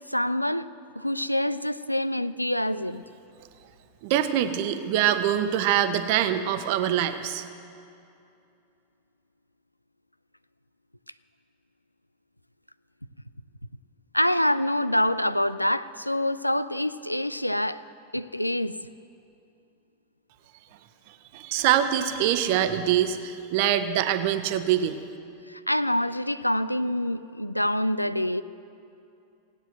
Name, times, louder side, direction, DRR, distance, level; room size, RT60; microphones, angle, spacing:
voice 1, 0.1-0.7 1.0-3.0 14.1-17.8 18.1-18.7 25.5-28.4, left 1 dB, 90° left, 15 dB, 0.4 m, -26 dB
voice 2, 4.0-7.4 21.3-25.0, right 10 dB, 50° right, 10 dB, 0.9 m, -24 dB
16.5 x 9.2 x 7.8 m, 2.6 s
figure-of-eight pair, 90°, 0 cm